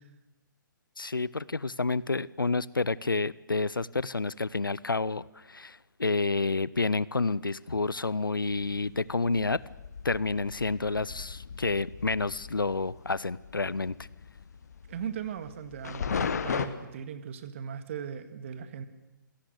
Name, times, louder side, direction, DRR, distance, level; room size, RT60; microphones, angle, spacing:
voice 1, 1.0-9.6 10.0-13.9, left 3 dB, 75° left, 21 dB, 0.7 m, -29 dB
sound 1, 8.5-16.7, left 6 dB, 50° left, 1.6 m, -37 dB
voice 2, 14.9-18.9, right 8 dB, 35° right, 10 dB, 1.8 m, -38 dB
27.0 x 17.5 x 6.7 m, 1.1 s
figure-of-eight pair, 135°, 11 cm